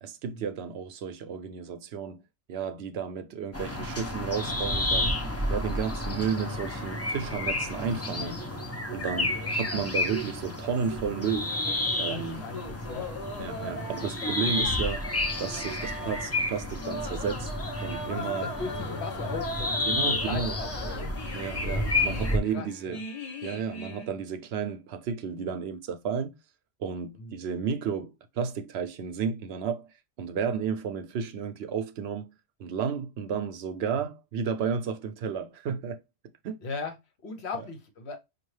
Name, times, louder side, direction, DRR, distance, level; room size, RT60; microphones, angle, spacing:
voice 1, 0.0-2.2 2.5-5.2 5.5-8.5 8.9-11.6 12.0-12.4 13.4-15.1 15.4-17.5 17.8-18.5 19.9-20.6 21.3-23.0 23.4-26.3 26.8-29.9 30.2-32.3 32.6-36.0 36.4-36.6, right 6 dB, 70° right, 0.8 m, -32 dB
sound 1, 3.5-22.4, left 2 dB, 20° left, 0.4 m, -31 dB
sound 2, 11.1-24.1, left 1 dB, 35° left, 0.9 m, -40 dB
voice 2, 11.9-13.1 18.1-21.1 22.0-23.0 27.2-27.3 34.0-34.1 36.6-37.0 37.2-38.2, left 4 dB, 70° left, 1.1 m, -38 dB
5.3 x 2.3 x 3.2 m
omnidirectional pair, 1.2 m